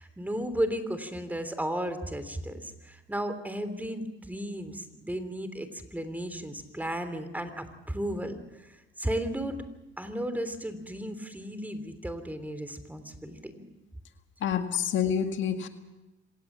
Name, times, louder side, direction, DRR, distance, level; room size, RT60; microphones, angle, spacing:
voice 1, 0.0-9.6 10.0-13.6, right 1 dB, 10° right, 10 dB, 3.0 m, -34 dB
voice 2, 14.4-15.7, left 8 dB, 75° left, 6 dB, 1.9 m, -27 dB
26.5 x 18.0 x 7.3 m, 1.0 s
cardioid pair, 90°, 20 cm